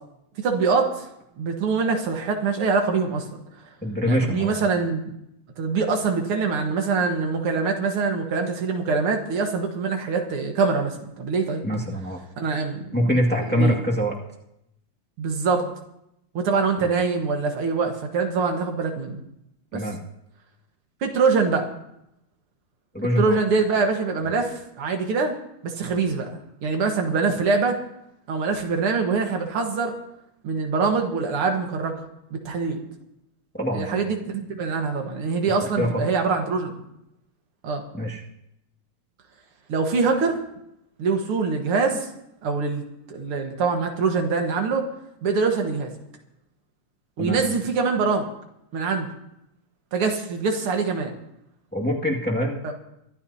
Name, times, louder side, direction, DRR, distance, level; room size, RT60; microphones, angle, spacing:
voice 1, 0.4-1.1 1.4-3.2 4.1-5.2 5.6-11.6 12.4-13.1 13.5-13.8 15.2-15.6 16.3-19.2 19.7-19.8 21.0-21.7 23.2-25.4 25.6-27.8 28.3-29.9 30.4-31.9 32.3-32.8 33.7-36.8 37.6-37.9 39.7-40.4 41.0-42.1 42.4-42.8 43.1-44.9 45.2-45.9 47.2-48.3 48.7-49.1 49.9-51.1 52.6-52.7, right 4 dB, 90° right, 3 dB, 2.4 m, -24 dB
voice 2, 3.8-4.6 11.6-12.2 12.9-14.1 16.8-16.9 19.7-20.0 22.9-23.4 24.2-24.3 33.6-34.0 35.8-36.0 37.9-38.2 47.2-47.4 51.7-52.6, equal, 5° left, -3 dB, 1.7 m, -24 dB
23.5 x 12.0 x 2.8 m, 0.81 s
omnidirectional pair, 2.4 m